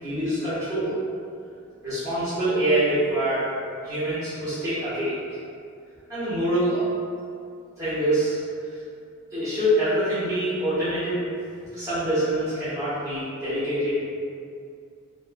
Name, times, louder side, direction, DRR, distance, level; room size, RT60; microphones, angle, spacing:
voice 1, 0.0-1.0 1.8-3.5 3.8-5.1 6.1-6.8 7.8-8.4 8.7-8.8 9.3-11.2 11.7-14.0, right 1 dB, 15° right, -16 dB, 0.7 m, -25 dB
2.8 x 2.2 x 2.4 m, 2.4 s
head